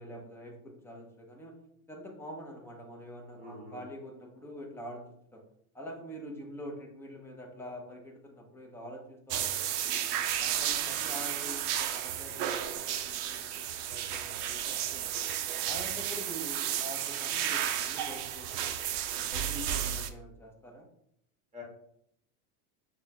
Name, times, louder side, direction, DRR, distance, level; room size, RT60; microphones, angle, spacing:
voice 1, 0.0-1.6 1.9-5.1 5.3-5.4 5.7-10.0 10.4-15.3 15.7-18.8 19.1-20.9, equal, 5° left, 0 dB, 0.4 m, -45 dB
voice 2, 3.4-3.8 21.5-21.6, left 2 dB, 15° right, -1 dB, 1.4 m, -45 dB
sound 1, 9.3-20.1, right 10 dB, 55° right, 0.5 m, -33 dB
6.0 x 2.1 x 2.7 m, 0.73 s
supercardioid pair, 135°, 45 cm